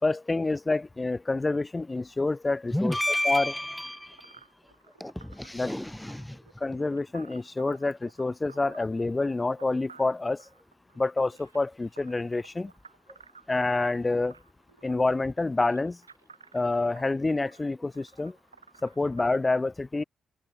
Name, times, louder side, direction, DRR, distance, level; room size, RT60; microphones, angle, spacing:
voice 1, 0.0-2.9 3.2-3.5 5.5-5.7 6.6-10.4 11.0-12.7 13.5-14.3 14.8-16.0 16.5-18.3 18.8-20.0, left 3 dB, 20° left, 1.4 m, -27 dB
voice 2, 2.7-4.4 5.0-6.7, left 1 dB, 5° left, 5.5 m, -31 dB
sound 1, 3.8-19.4, right 5 dB, 85° right, 5.9 m, -54 dB
open air
figure-of-eight pair, 40°, 0 cm